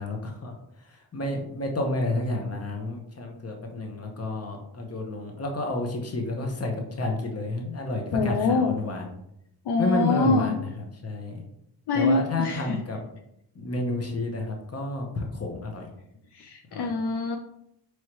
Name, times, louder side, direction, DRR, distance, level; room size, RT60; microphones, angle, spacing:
voice 1, 0.0-9.1 9.8-11.4 11.9-13.0 13.5-15.9 16.7-16.9, left 2 dB, 35° left, 2 dB, 1.0 m, -30 dB
voice 2, 8.1-8.7 9.7-10.6 11.9-12.8 16.3-17.4, left 3 dB, 65° left, 4 dB, 0.5 m, -25 dB
4.5 x 3.2 x 3.0 m, 0.78 s
cardioid pair, 85°, 44 cm